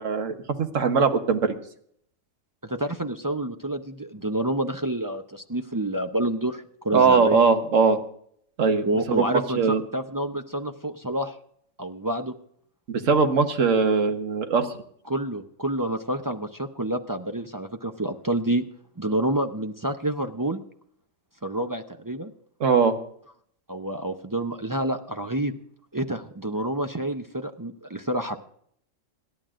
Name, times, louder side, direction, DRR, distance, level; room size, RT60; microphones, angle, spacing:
voice 1, 0.0-1.6 6.9-8.0 8.6-9.2 9.6-9.8 12.9-14.7 22.6-22.9, right 5 dB, 70° right, 7 dB, 1.5 m, -21 dB
voice 2, 2.6-7.4 8.8-11.4 11.8-12.3 15.1-18.6 19.0-20.6 21.4-22.3 23.7-25.5 25.9-28.4, right 1 dB, 25° right, 6 dB, 0.4 m, -28 dB
26.5 x 11.5 x 2.5 m, 0.65 s
omnidirectional pair, 1.4 m